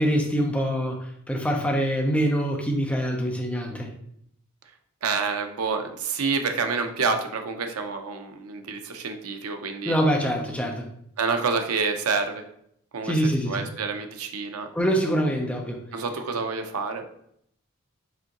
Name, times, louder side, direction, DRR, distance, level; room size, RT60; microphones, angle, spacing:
voice 1, 0.0-3.9 9.8-10.9 13.0-13.7 14.7-15.8, equal, 5° left, 1 dB, 0.6 m, -24 dB
voice 2, 5.0-10.0 11.2-12.4 12.9-13.1 13.5-14.7 15.9-17.1, right 4 dB, 80° right, 6 dB, 0.6 m, -28 dB
4.9 x 3.6 x 2.9 m, 0.71 s
head